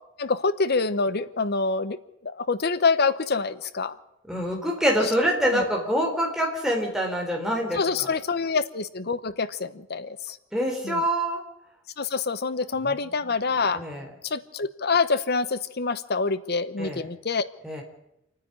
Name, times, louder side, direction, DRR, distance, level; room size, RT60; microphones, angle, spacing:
voice 1, 0.2-2.0 2.2-4.0 5.0-5.1 5.5-5.7 7.7-10.4 10.8-11.0 12.0-13.8 14.2-17.4, left 4 dB, 50° left, 14 dB, 0.9 m, -26 dB
voice 2, 4.3-7.8 10.5-11.4 13.8-14.0 16.8-17.0 17.6-17.8, equal, ahead, 0 dB, 4.2 m, -25 dB
28.0 x 9.9 x 10.0 m, 0.83 s
head